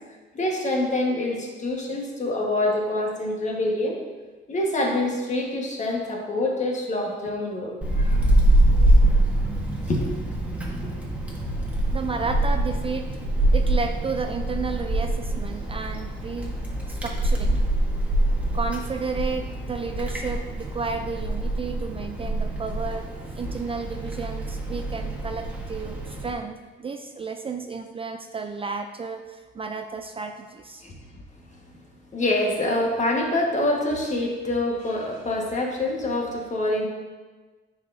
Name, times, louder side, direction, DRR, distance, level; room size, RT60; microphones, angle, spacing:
voice 1, 0.3-4.0 4.5-8.2 9.9-10.1 10.5-11.0 11.2-11.4 30.8-30.9 32.1-36.9, left 1 dB, 35° left, 0 dB, 1.5 m, -26 dB
Wind, 7.8-26.3, right 1 dB, 5° right, 1.3 m, -24 dB
voice 2, 11.9-13.1 13.5-16.5 16.9-17.6 18.5-23.1 23.4-30.8, right 4 dB, 30° right, 5 dB, 0.4 m, -32 dB
9.8 x 4.8 x 2.7 m, 1.3 s
cardioid pair, 90°, 20 cm